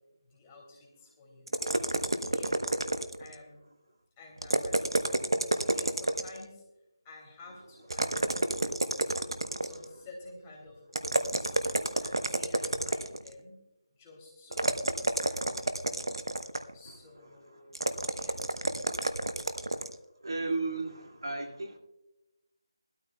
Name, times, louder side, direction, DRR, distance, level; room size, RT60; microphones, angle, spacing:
voice 1, 0.2-1.7 2.0-2.6 3.2-3.7 4.2-6.6 7.0-8.5 9.1-11.6 12.0-13.6 14.0-15.8 16.7-18.4, left 2 dB, 15° left, -2 dB, 2.8 m, -51 dB
sound 1, 1.5-3.3 4.4-6.4 7.9-9.9 10.9-13.3 14.5-16.7 17.7-19.9, right 2 dB, 90° right, 0.9 m, -30 dB
voice 2, 16.8-17.9 20.2-21.8, right 3 dB, 70° right, 2 dB, 2.2 m, -36 dB
20.0 x 13.0 x 2.3 m, 0.95 s
figure-of-eight pair, 165°, 2 cm